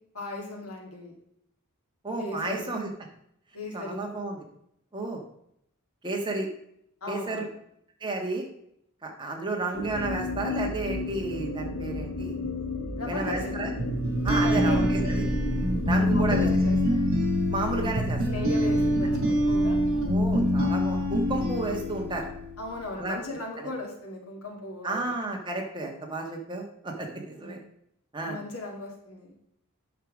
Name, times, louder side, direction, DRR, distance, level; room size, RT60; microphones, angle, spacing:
voice 1, 0.1-1.1 2.2-2.7 3.5-4.1 7.0-7.5 13.0-13.6 14.3-14.8 15.0-15.3 16.1-17.1 18.3-19.8 22.6-25.1 27.3-27.6 28.2-29.4, left 2 dB, 80° left, 1 dB, 2.5 m, -37 dB
voice 2, 2.0-2.9 3.7-4.4 4.9-5.2 6.0-6.5 7.1-7.4 8.0-8.4 9.0-12.4 13.1-13.7 14.2-15.2 15.9-16.5 17.5-18.2 20.0-22.3 23.0-23.2 24.8-27.6 28.1-28.4, right 2 dB, 20° right, 1 dB, 1.4 m, -32 dB
sound 1, 9.7-16.7, left 3 dB, 60° left, 1.6 m, -34 dB
sound 2, 13.8-22.5, equal, 60° right, 2.4 m, -25 dB
8.9 x 6.6 x 5.0 m, 0.74 s
head